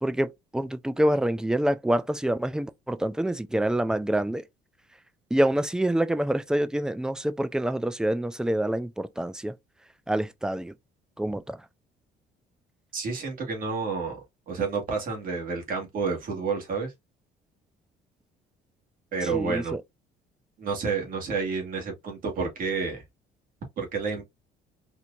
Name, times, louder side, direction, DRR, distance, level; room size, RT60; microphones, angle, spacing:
voice 1, 0.0-4.4 5.3-9.5 10.1-10.7 11.2-11.6 19.2-19.8, right 1 dB, 5° right, 0.4 m, -26 dB
voice 2, 12.9-14.2 14.5-16.9 19.1-19.8 20.6-23.0 23.8-24.2, right 4 dB, 55° right, 1.8 m, -30 dB
4.4 x 2.7 x 2.5 m
cardioid pair, 110°, 17 cm